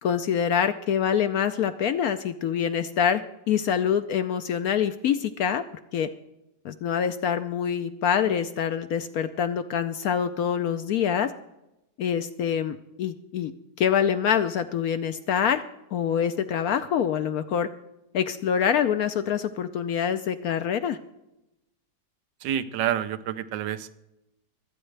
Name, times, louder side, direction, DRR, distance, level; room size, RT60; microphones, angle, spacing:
voice 1, 0.0-3.2 3.5-5.6 5.9-6.1 6.6-11.3 12.0-13.5 13.8-15.6 15.9-17.7 18.1-21.0, left 8 dB, 70° left, 10 dB, 0.9 m, -25 dB
voice 2, 22.4-23.9, right 10 dB, 85° right, 13 dB, 1.4 m, -28 dB
25.5 x 9.0 x 3.3 m, 0.90 s
omnidirectional pair, 1.9 m